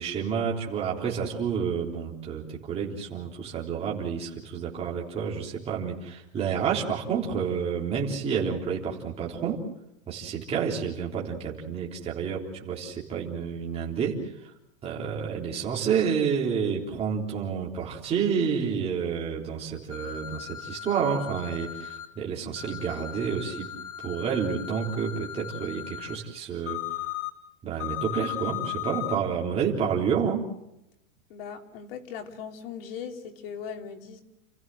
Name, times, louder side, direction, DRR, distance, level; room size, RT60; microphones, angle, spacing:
voice 1, 0.0-9.6 10.1-14.5 14.8-23.7 24.0-26.8 27.6-30.4, right 7 dB, 15° right, -3 dB, 3.8 m, -29 dB
sound 1, 19.9-22.1 22.6-26.2 26.7-27.3 27.8-29.2, left 13 dB, 65° left, 3.8 m, -37 dB
voice 2, 31.3-34.2, left 7 dB, 45° left, 4 dB, 3.1 m, -39 dB
30.0 x 16.0 x 7.8 m, 0.85 s
supercardioid pair, 170°, 39 cm